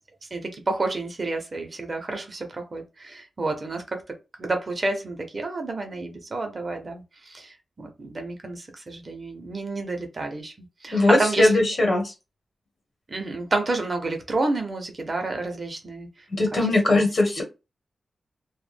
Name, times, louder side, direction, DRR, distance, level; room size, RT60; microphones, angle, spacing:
voice 1, 0.2-4.0 4.4-11.6 13.1-16.6 16.9-17.0, right 2 dB, 35° right, 0.5 m, -30 dB
voice 2, 10.9-12.0 16.3-17.4, left 2 dB, 45° left, 1.0 m, -20 dB
2.1 x 2.0 x 3.2 m
wide cardioid pair, 155°, 0 cm